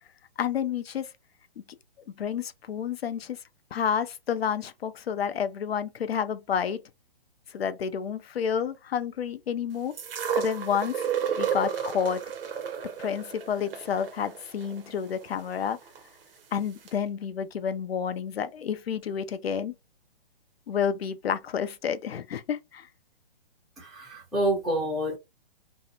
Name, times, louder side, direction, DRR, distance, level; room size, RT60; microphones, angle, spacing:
voice 1, 0.4-1.1 2.2-3.4 3.7-6.8 7.5-9.9 10.4-11.0 11.4-12.2 13.0-15.8 16.5-19.7 20.7-22.9, left 7 dB, 85° left, 0.5 m, -30 dB
sound 1, 10.0-16.0 16.9-17.0, right 7 dB, 65° right, 0.7 m, -32 dB
voice 2, 23.8-25.2, right 1 dB, ahead, 0.5 m, -28 dB
2.6 x 2.0 x 2.6 m
hypercardioid pair, 140°, 30 cm